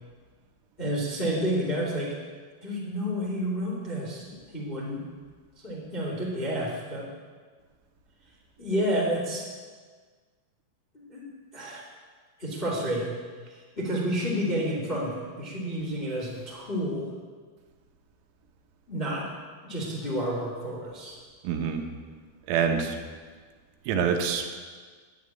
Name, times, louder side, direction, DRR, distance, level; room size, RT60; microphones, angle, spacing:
voice 1, 0.8-2.2 2.6-5.0 5.5-7.1 8.6-9.5 10.9-11.2 11.5-11.9 12.4-13.2 13.4-17.1 18.9-19.3 19.6-21.2, equal, 20° left, -4 dB, 1.5 m, -30 dB
voice 2, 21.4-21.8 22.5-23.0 23.9-24.5, right 7 dB, 85° right, 4 dB, 3.9 m, -26 dB
11.0 x 9.6 x 9.5 m, 1.6 s
omnidirectional pair, 6.0 m